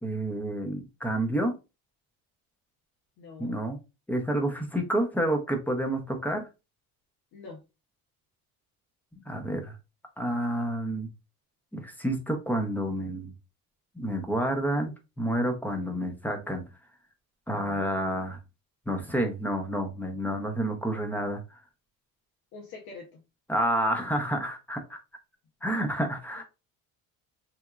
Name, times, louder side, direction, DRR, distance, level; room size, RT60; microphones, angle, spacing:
voice 1, 0.0-1.5 3.4-3.8 4.1-6.5 9.1-9.8 10.2-11.1 11.7-13.3 14.0-14.9 15.2-16.6 17.5-18.4 18.9-21.6 23.5-25.0 25.6-26.4, right 1 dB, 5° left, 4 dB, 0.5 m, -29 dB
voice 2, 3.2-3.6 7.3-7.6 15.8-16.0 22.5-23.2 26.4-26.5, left 4 dB, 90° left, 0 dB, 0.9 m, -45 dB
3.4 x 3.0 x 2.3 m, 0.27 s
cardioid pair, 160°, 37 cm